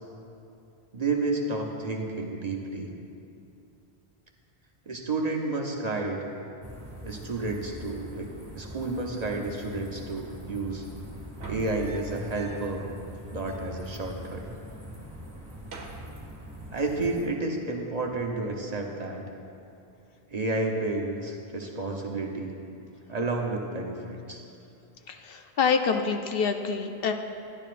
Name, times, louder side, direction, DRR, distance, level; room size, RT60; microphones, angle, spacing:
voice 1, 0.9-2.9 4.9-6.2 7.0-8.3 8.6-10.9 11.5-12.8 13.3-14.4 16.7-19.2 20.3-22.5 23.1-24.4, right 2 dB, 40° right, 0 dB, 0.8 m, -31 dB
sound 1, 6.6-17.3, equal, 15° right, 2.0 m, -43 dB
sound 2, 11.3-12.8 13.1-13.2 13.4-14.4 14.7-15.1 15.4-16.8 18.1-18.4, right 4 dB, 80° right, 1.2 m, -45 dB
voice 2, 25.1-27.1, left 5 dB, 65° left, 6 dB, 0.7 m, -26 dB
12.5 x 10.5 x 2.5 m, 2.7 s
omnidirectional pair, 1.1 m